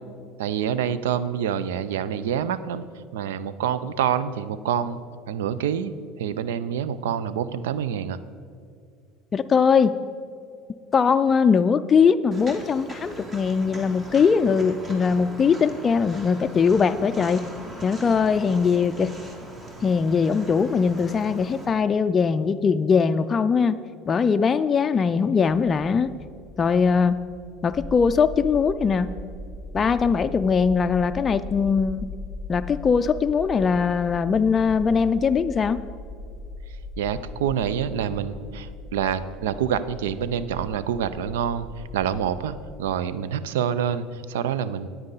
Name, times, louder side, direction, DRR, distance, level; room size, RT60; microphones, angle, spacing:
voice 1, 0.4-2.8 3.1-5.0 5.3-5.9 6.2-8.2 37.0-44.9, right 8 dB, 85° right, 15 dB, 0.4 m, -27 dB
voice 2, 9.3-10.0 10.9-17.5 17.8-19.1 19.8-23.8 24.1-26.1 26.6-27.2 27.6-29.1 29.7-32.1 32.5-35.8, left 5 dB, 30° left, 9 dB, 0.3 m, -21 dB
Walk footsteps, 12.3-21.7, right 2 dB, 30° right, 1.9 m, -41 dB
sound 1, 26.1-42.7, left 2 dB, 10° right, 2.7 m, -39 dB
9.7 x 9.1 x 4.0 m, 2.4 s
hypercardioid pair, 90°, 0 cm